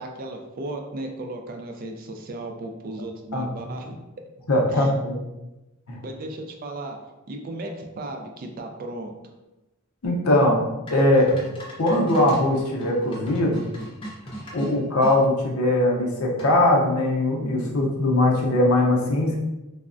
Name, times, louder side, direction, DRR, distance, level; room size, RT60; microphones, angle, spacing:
voice 1, 0.0-4.0 4.7-4.9 6.0-7.0 7.3-9.1, right 2 dB, 40° right, 3 dB, 0.3 m, -35 dB
voice 2, 3.3-3.7 4.5-5.2 5.9-6.0 10.0-11.3 11.8-13.7 14.5-19.4, left 1 dB, 75° left, -1 dB, 0.6 m, -21 dB
sound 1, 10.9-15.2 16.4-16.8, equal, 25° left, 0.5 m, -38 dB
3.3 x 2.0 x 2.4 m, 1.0 s
head